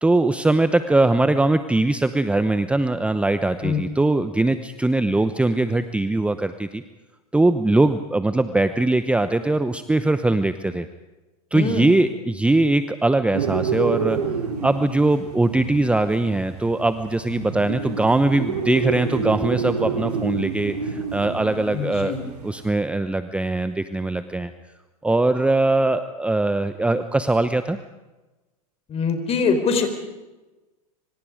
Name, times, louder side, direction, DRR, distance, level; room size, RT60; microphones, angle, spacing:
voice 1, 0.0-6.8 7.3-10.9 11.5-14.2 14.6-22.2 22.4-24.5 25.0-27.8, right 2 dB, 5° right, 11 dB, 0.9 m, -21 dB
voice 2, 11.5-11.9 21.7-22.3 28.9-29.9, left 5 dB, 30° left, 8 dB, 4.4 m, -23 dB
sound 1, 13.3-22.7, right 5 dB, 80° right, 3.5 m, -29 dB
26.0 x 25.5 x 5.1 m, 1.1 s
hypercardioid pair, 95°, 20 cm